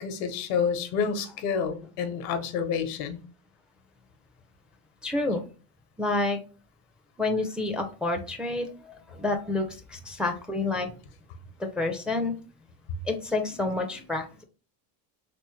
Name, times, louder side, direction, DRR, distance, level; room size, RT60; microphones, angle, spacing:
voice 1, 0.0-3.2, left 6 dB, 85° left, 0.9 m, -29 dB
voice 2, 5.0-5.4 6.0-6.4 7.2-10.9 11.8-12.3 13.1-14.4, left 2 dB, ahead, 0.4 m, -29 dB
3.4 x 3.0 x 3.1 m
supercardioid pair, 100°, 45 cm